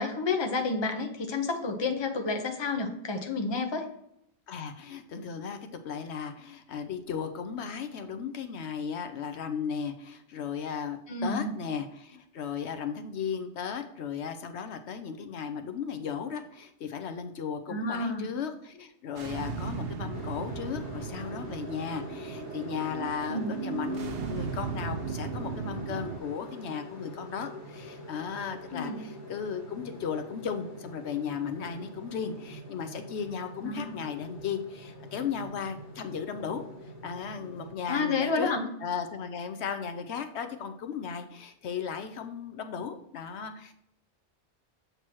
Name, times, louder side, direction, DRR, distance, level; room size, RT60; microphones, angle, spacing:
voice 1, 0.0-3.9 11.1-11.5 17.7-18.3 23.3-23.6 28.7-29.0 33.6-33.9 37.9-38.7, left 3 dB, 25° left, 4 dB, 0.8 m, -30 dB
voice 2, 4.5-36.6 37.0-38.5 38.8-43.8, left 7 dB, 75° left, 8 dB, 0.9 m, -36 dB
sound 1, 19.2-26.2, right 5 dB, 65° right, 0.8 m, -36 dB
sound 2, 20.1-37.7, left 1 dB, 45° left, 1.4 m, -45 dB
8.0 x 2.9 x 6.1 m, 0.74 s
omnidirectional pair, 1.2 m